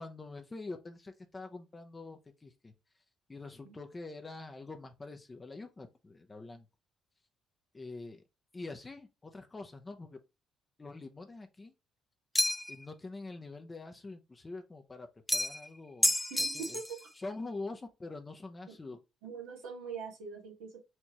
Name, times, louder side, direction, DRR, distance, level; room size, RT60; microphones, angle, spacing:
voice 1, 0.0-2.7 3.3-6.7 7.7-8.2 8.5-10.2 10.8-11.7 12.7-16.2 16.5-16.8 17.2-19.0, left 3 dB, 25° left, 0.8 m, -45 dB
sound 1, 12.3-12.8 15.3-15.7 16.0-17.0, left 1 dB, 5° left, 0.4 m, -30 dB
voice 2, 16.3-16.8 19.2-20.9, right 5 dB, 90° right, 1.8 m, -43 dB
4.4 x 3.5 x 3.0 m
supercardioid pair, 65°, 0 cm